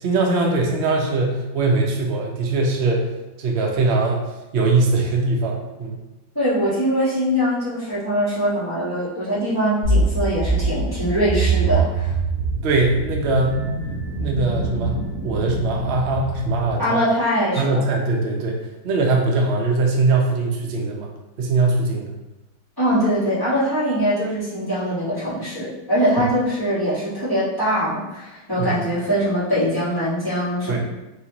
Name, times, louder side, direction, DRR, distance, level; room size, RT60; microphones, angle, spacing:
voice 1, 0.0-3.1 3.4-4.2 4.5-6.0 12.6-13.6 14.2-17.0 17.6-18.6 18.8-21.1 21.4-22.1 28.6-28.7 30.7-30.8, right 3 dB, 70° right, 0 dB, 0.5 m, -21 dB
voice 2, 6.3-12.1 16.8-17.8 22.8-30.8, equal, 15° left, -12 dB, 1.2 m, -22 dB
sound 1, 9.8-16.7, right 3 dB, 55° left, 1.3 m, -24 dB
4.2 x 2.8 x 2.9 m, 1.0 s
omnidirectional pair, 2.0 m